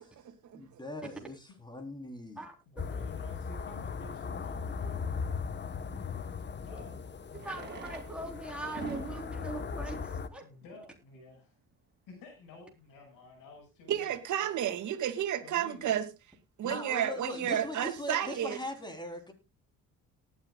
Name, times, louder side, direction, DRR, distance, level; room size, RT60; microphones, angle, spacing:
voice 1, 0.5-2.4 6.6-6.8 16.6-19.3, left 1 dB, 15° left, 5 dB, 3.8 m, -40 dB
voice 2, 2.7-5.0 6.7-6.9 7.3-7.8 10.4-11.5 12.1-14.1 14.4-14.5 15.4-15.9, left 3 dB, 75° left, 3 dB, 6.0 m, -51 dB
sound 1, 2.8-10.3, left 5 dB, 30° left, 1.1 m, -38 dB
Fireworks, 7.3-11.0 11.8-11.9 12.1-12.2 12.4-12.5 13.0-13.2, right 5 dB, 30° right, 4.2 m, -47 dB
voice 3, 7.4-10.5, right 2 dB, 5° right, 1 dB, 3.7 m, -41 dB
voice 4, 13.9-16.1 16.6-18.6, right 10 dB, 60° right, 7 dB, 2.3 m, -31 dB
18.5 x 9.8 x 2.3 m, 0.25 s
supercardioid pair, 80°, 33 cm